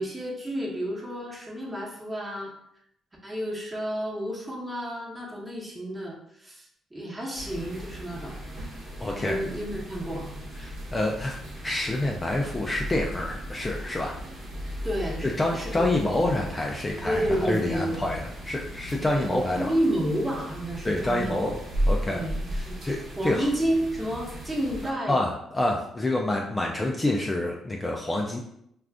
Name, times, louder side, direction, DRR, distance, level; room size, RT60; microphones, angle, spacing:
voice 1, 0.0-2.5 3.2-8.4 9.1-10.3 14.8-15.9 17.0-18.0 19.2-21.4 22.1-22.8 23.2-25.2, right 1 dB, 15° right, -2 dB, 0.9 m, -30 dB
sound 1, 7.3-24.9, equal, 60° right, 0.9 m, -36 dB
voice 2, 9.0-9.4 10.6-11.4 11.6-14.1 15.4-19.7 20.8-21.6 21.9-22.2 22.5-23.5 25.1-28.4, left 1 dB, 20° left, 0 dB, 0.3 m, -27 dB
2.4 x 2.3 x 3.5 m, 0.74 s
cardioid pair, 90°, 0 cm